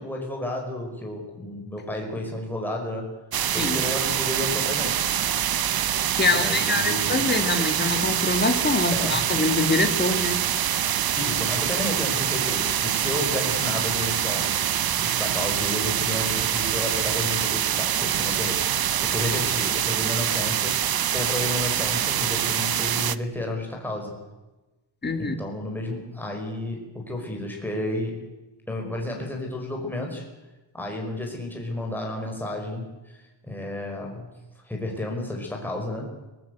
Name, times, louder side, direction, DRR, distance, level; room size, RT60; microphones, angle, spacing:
voice 1, 0.0-3.1 3.5-5.0 6.3-7.3 8.9-9.3 11.2-14.5 14.9-20.8 21.1-24.1 25.2-28.2 28.7-30.2 30.7-34.3 34.6-36.1, left 1 dB, 5° left, 0 dB, 5.2 m, -32 dB
sound 1, 3.3-23.2, right 10 dB, 55° right, 0.8 m, -25 dB
voice 2, 6.1-10.4 25.0-25.3, left 3 dB, 25° left, 6 dB, 2.4 m, -24 dB
24.0 x 19.0 x 8.2 m, 1.1 s
wide cardioid pair, 145°, 44 cm